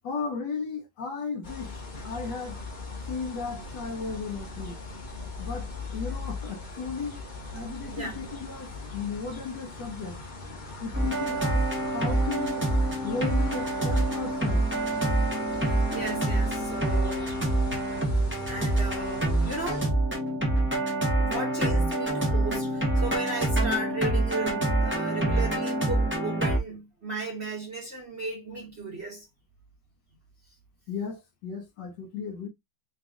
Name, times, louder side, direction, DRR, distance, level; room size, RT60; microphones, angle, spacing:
voice 1, 0.0-2.6 3.1-4.8 5.4-7.2 7.5-10.2 10.8-12.6 13.0-14.7 17.7-17.8 30.9-32.5, left 5 dB, 65° left, 1.2 m, -35 dB
sound 1, 1.4-19.9, left 3 dB, 30° left, 0.9 m, -40 dB
sound 2, 10.9-26.6, right 2 dB, 10° right, 0.6 m, -26 dB
voice 2, 15.5-17.4 18.4-19.9 21.2-29.3, right 2 dB, 40° right, 1.1 m, -35 dB
4.0 x 2.4 x 3.4 m
omnidirectional pair, 2.2 m